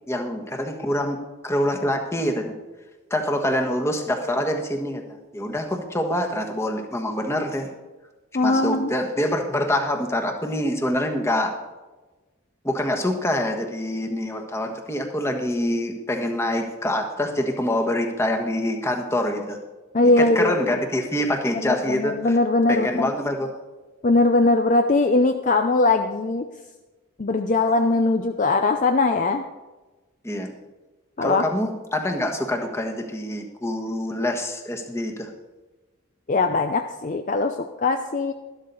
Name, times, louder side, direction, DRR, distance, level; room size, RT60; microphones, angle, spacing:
voice 1, 0.1-2.6 3.1-5.0 5.3-7.7 8.4-11.5 12.6-19.6 20.2-22.4 22.7-23.5 30.2-30.5 31.2-35.3, left 1 dB, 15° left, 3 dB, 1.3 m, -25 dB
voice 2, 8.3-8.9 19.9-20.8 21.5-23.1 24.0-26.5 27.2-29.4 31.2-31.4 36.3-38.3, left 3 dB, 40° left, 6 dB, 0.5 m, -20 dB
12.5 x 12.5 x 4.1 m, 1.2 s
head